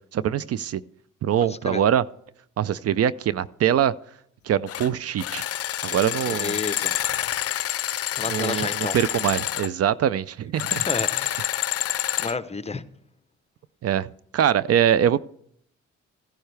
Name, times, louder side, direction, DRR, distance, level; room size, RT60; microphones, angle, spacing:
voice 1, 0.1-0.8 1.2-2.0 2.6-3.9 4.4-5.4 5.8-6.5 8.3-8.7 8.9-10.8 13.8-14.1 14.3-15.2, right 9 dB, 55° right, 18 dB, 0.5 m, -23 dB
voice 2, 1.4-1.8 6.3-7.0 8.1-9.0 10.7-11.5 12.2-12.8, left 4 dB, 20° left, 12 dB, 0.8 m, -31 dB
sound 1, 4.7-4.9 5.2-9.7 10.5-12.4, left 12 dB, 55° left, 0.6 m, -27 dB
16.0 x 10.0 x 3.4 m, 0.68 s
cardioid pair, 90°, 30 cm